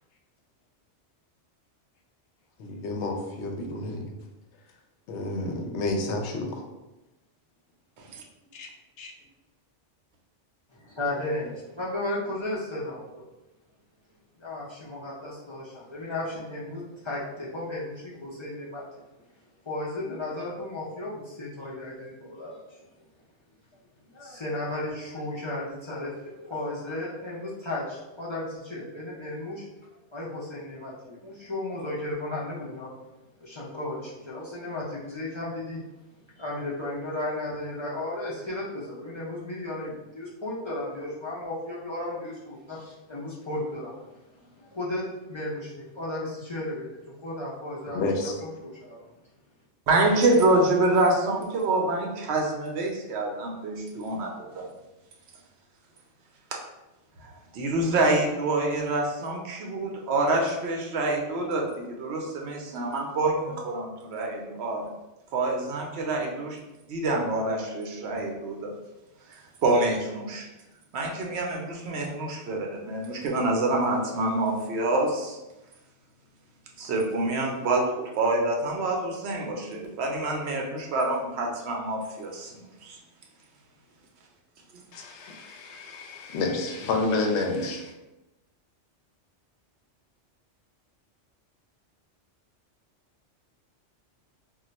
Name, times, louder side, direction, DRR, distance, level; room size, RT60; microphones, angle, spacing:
voice 1, 2.6-4.1 5.1-6.6 8.5-8.7 9.0-9.1 47.9-48.3 84.9-87.9, left 2 dB, 75° left, 3 dB, 0.8 m, -30 dB
voice 2, 10.7-13.3 14.4-19.0 19.7-22.9 24.1-29.6 30.1-32.9 33.4-35.8 36.3-49.1, left 1 dB, 45° left, -7 dB, 0.4 m, -34 dB
voice 3, 49.9-54.7 57.2-64.9 65.3-66.6 66.9-68.7 69.3-70.5 70.9-75.4 76.8-83.0, right 2 dB, 70° right, 0 dB, 0.8 m, -26 dB
2.3 x 2.2 x 3.9 m, 1.0 s
omnidirectional pair, 1.2 m